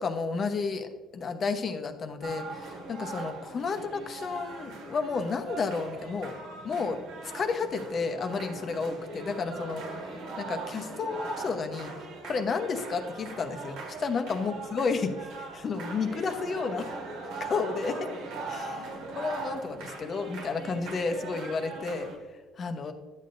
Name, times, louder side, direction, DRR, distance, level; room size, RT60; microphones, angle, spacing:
voice 1, 0.0-7.0 7.3-9.8 10.4-11.9 12.2-15.3 15.5-16.9 17.4-18.0 18.5-22.1 22.6-22.9, left 4 dB, 35° left, 7 dB, 0.9 m, -31 dB
sound 1, 2.2-22.2, right 3 dB, 85° right, 1.9 m, -40 dB
11.5 x 8.5 x 2.6 m, 1.3 s
cardioid pair, 135°, 0 cm